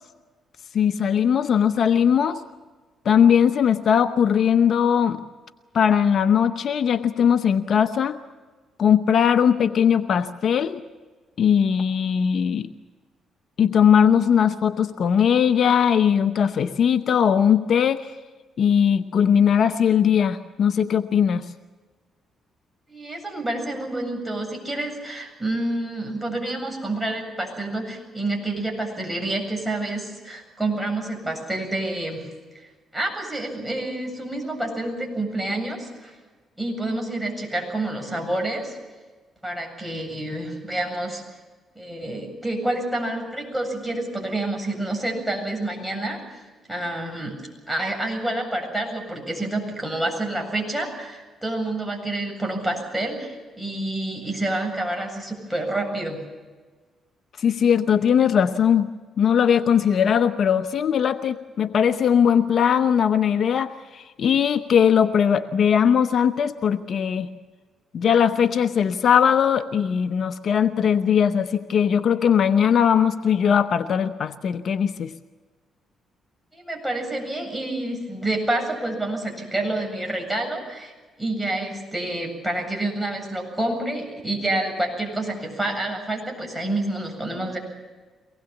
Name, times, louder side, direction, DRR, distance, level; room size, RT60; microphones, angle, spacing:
voice 1, 0.7-2.4 3.0-5.2 5.7-8.2 8.8-10.8 11.4-12.7 13.6-18.1 18.6-21.5 57.4-67.3 67.9-75.1, left 8 dB, 60° left, 9 dB, 0.9 m, -19 dB
voice 2, 22.9-32.3 32.5-36.2 36.6-38.8 39.4-41.2 41.7-46.2 46.7-47.4 47.7-56.2 76.5-80.9 81.2-87.6, right 1 dB, 10° right, 2 dB, 7.9 m, -28 dB
24.0 x 19.5 x 7.3 m, 1.3 s
cardioid pair, 90°, 0 cm